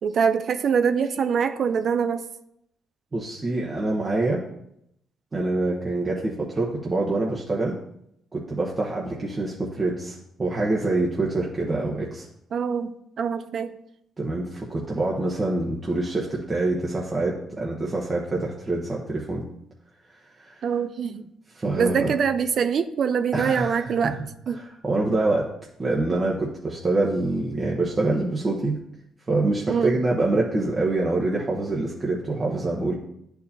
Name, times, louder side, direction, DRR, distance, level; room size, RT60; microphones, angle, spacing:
voice 1, 0.0-2.3 12.5-13.8 20.6-21.3 21.8-24.2 24.5-24.6 29.7-30.0, right 6 dB, 60° right, 10 dB, 0.5 m, -24 dB
voice 2, 3.1-4.4 5.3-7.8 8.3-12.3 14.2-19.4 20.4-20.6 21.6-22.1 23.3-24.1 24.6-25.5 25.8-28.8 29.3-33.0, right 2 dB, 30° right, -3 dB, 1.1 m, -25 dB
10.5 x 4.6 x 2.8 m, 0.77 s
cardioid pair, 90°, 0 cm